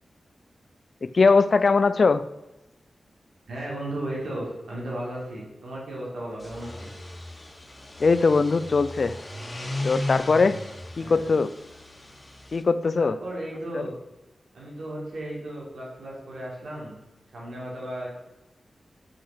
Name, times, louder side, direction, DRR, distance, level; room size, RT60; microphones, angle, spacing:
voice 1, 1.0-2.2 8.0-9.2 9.8-10.6 11.0-11.5 12.5-13.2, left 4 dB, 60° left, 14 dB, 0.5 m, -20 dB
voice 2, 3.5-6.9 11.0-11.3 13.0-13.9 14.5-17.0 17.3-18.1, right 1 dB, 85° right, -4 dB, 4.3 m, -35 dB
sound 1, 6.3-12.6, left 1 dB, 30° left, 2.2 m, -36 dB
8.0 x 6.4 x 7.7 m, 1.0 s
cardioid pair, 50°, 0 cm